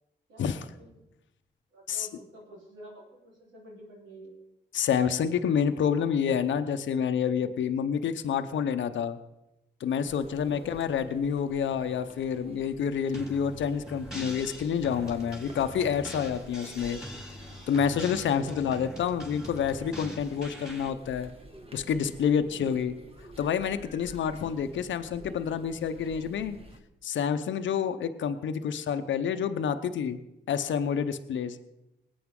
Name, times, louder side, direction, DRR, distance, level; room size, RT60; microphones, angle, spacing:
voice 1, 0.3-1.0 1.7-4.4 10.4-10.8 18.3-18.8 22.5-23.0, right 1 dB, 85° right, -3 dB, 3.7 m, -49 dB
voice 2, 4.7-9.2 9.8-17.0 17.7-21.3 21.7-22.9 23.4-26.6 27.0-30.2 30.5-31.6, left 7 dB, 80° left, 9 dB, 0.7 m, -28 dB
sound 1, 10.1-26.8, right 1 dB, 30° right, 1.9 m, -50 dB
sound 2, 13.1-20.9, equal, 5° right, 4.0 m, -43 dB
19.5 x 8.6 x 3.7 m, 0.89 s
supercardioid pair, 45°, 19 cm